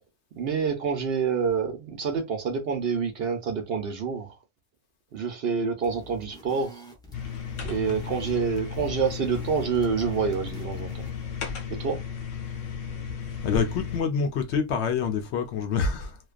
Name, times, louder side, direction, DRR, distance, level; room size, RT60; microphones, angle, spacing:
voice 1, 0.4-4.3 5.1-6.9 7.6-11.1 11.7-12.0, right 6 dB, 60° right, 0.8 m, -27 dB
sound 1, 5.8-11.3, left 1 dB, 5° left, 0.5 m, -48 dB
sound 2, 7.1-14.0, left 6 dB, 85° left, 1.1 m, -35 dB
voice 2, 13.4-16.2, left 5 dB, 65° left, 0.8 m, -26 dB
2.5 x 2.2 x 2.3 m
omnidirectional pair, 1.3 m